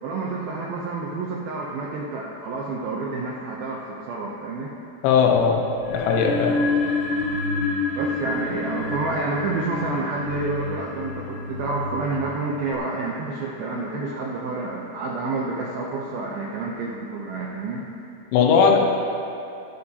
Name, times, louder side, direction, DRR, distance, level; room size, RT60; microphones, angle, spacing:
voice 1, 0.0-4.7 7.9-17.9, right 3 dB, 80° right, -3 dB, 2.2 m, -29 dB
voice 2, 5.0-5.6 5.9-6.6 18.3-18.8, left 6 dB, 90° left, 0 dB, 3.5 m, -18 dB
sound 1, 5.8-12.7, left 3 dB, 70° left, 2.8 m, -28 dB
20.0 x 8.6 x 2.9 m, 2.9 s
omnidirectional pair, 5.3 m